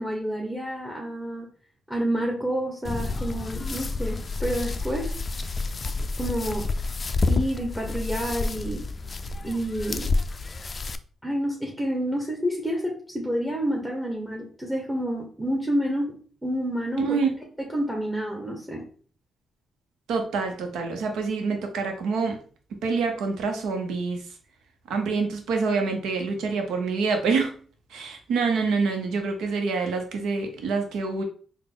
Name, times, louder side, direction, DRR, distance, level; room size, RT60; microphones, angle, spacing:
voice 1, 0.0-1.5 1.9-5.1 6.2-6.7 7.3-8.8 9.4-10.1 11.2-16.1 16.4-17.2 17.7-18.8, equal, 10° right, 0 dB, 1.0 m, -29 dB
sound 1, 2.8-10.9, left 3 dB, 40° left, 0.3 m, -29 dB
voice 2, 17.0-17.3 20.1-22.4 22.8-24.2 24.9-27.5 27.9-31.2, right 4 dB, 90° right, 4 dB, 0.8 m, -26 dB
3.9 x 2.2 x 3.7 m, 0.43 s
cardioid pair, 75°, 0 cm